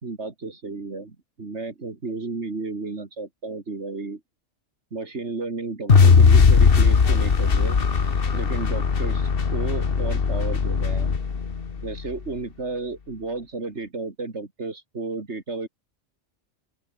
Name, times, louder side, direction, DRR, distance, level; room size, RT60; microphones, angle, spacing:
voice 1, 0.0-4.2 4.9-7.8 8.3-11.1 11.8-15.7, right 3 dB, 70° right, 3.0 m, -33 dB
sound 1, 5.9-12.1, left 5 dB, 55° left, 1.5 m, -18 dB
open air
omnidirectional pair, 1.2 m